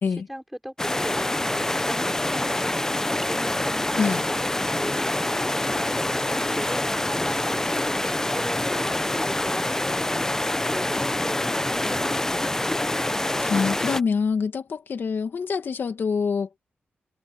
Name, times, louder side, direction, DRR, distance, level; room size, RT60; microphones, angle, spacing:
voice 1, 0.3-4.3 4.7-12.8, equal, 5° right, 5.4 m, -39 dB
sound 1, 0.8-14.0, left 1 dB, 15° left, 0.7 m, -26 dB
voice 2, 13.4-16.5, left 5 dB, 70° left, 2.1 m, -25 dB
wide cardioid pair, 105°, 4 cm